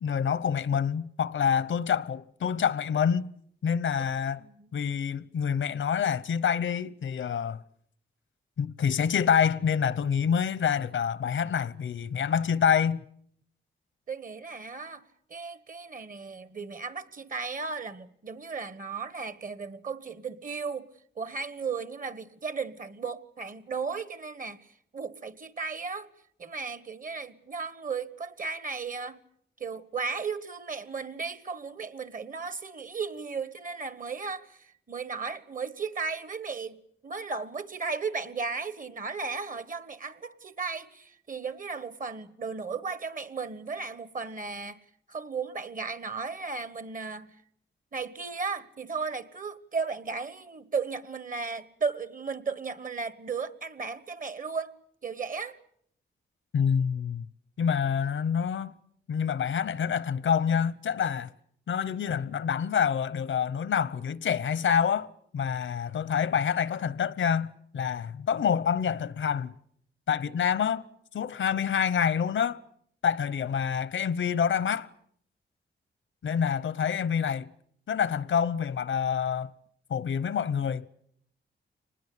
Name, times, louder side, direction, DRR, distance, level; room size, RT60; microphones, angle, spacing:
voice 1, 0.0-3.3 3.6-4.4 4.7-7.6 8.6-13.0 56.5-57.3 57.6-58.7 59.1-61.3 61.7-69.5 70.1-70.8 71.1-72.6 73.0-74.9 76.2-77.5 77.9-79.5 79.9-80.9, left 7 dB, 85° left, 0.9 m, -27 dB
voice 2, 4.4-4.7 14.1-15.0 15.3-20.9 21.2-24.6 24.9-26.1 26.4-29.2 29.6-36.8 37.0-44.8 45.1-47.4 47.9-55.6, right 5 dB, 45° right, 1.3 m, -35 dB
25.0 x 20.0 x 8.5 m
wide cardioid pair, 120°, 19 cm